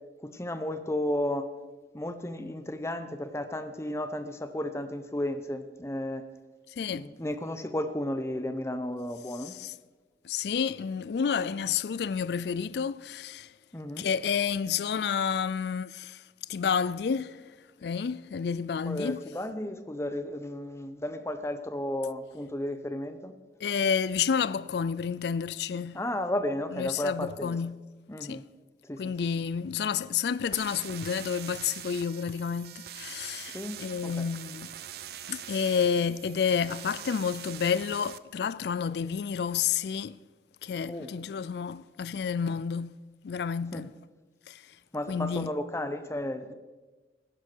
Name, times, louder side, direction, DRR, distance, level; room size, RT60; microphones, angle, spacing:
voice 1, 0.2-1.5 1.9-6.2 6.9-9.5 13.7-14.1 18.9-23.3 25.9-27.6 28.1-28.4 28.8-29.1 33.5-34.3 40.9-41.1 43.7-43.9 44.9-46.5, left 1 dB, 15° left, 0.8 m, -33 dB
voice 2, 6.7-7.1 9.4-9.7 10.2-13.5 14.0-16.2 16.5-17.6 17.8-19.2 23.6-26.0 26.7-27.7 28.2-28.4 29.0-34.7 35.3-40.2 40.6-42.9 43.2-43.9 44.5-44.8 45.1-45.5, left 6 dB, 65° left, 0.4 m, -30 dB
sound 1, 30.5-38.2, right 11 dB, 60° right, 0.5 m, -43 dB
16.0 x 11.0 x 4.6 m
head